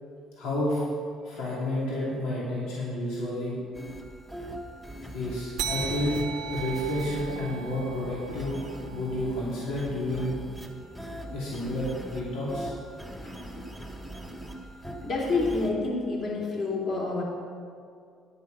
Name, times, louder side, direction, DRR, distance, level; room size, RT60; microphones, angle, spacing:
voice 1, 0.4-0.8 1.2-3.5 5.1-8.6 8.9-10.4 11.3-12.7 13.2-13.3, left 1 dB, 85° left, -7 dB, 3.0 m, -30 dB
sound 1, 3.7-15.7, right 1 dB, 5° left, 1.0 m, -40 dB
sound 2, 5.6-10.5, right 7 dB, 65° right, 0.8 m, -38 dB
voice 2, 15.0-17.2, left 3 dB, 45° left, -3 dB, 2.9 m, -28 dB
10.5 x 8.2 x 5.4 m, 2.3 s
cardioid pair, 135°, 0 cm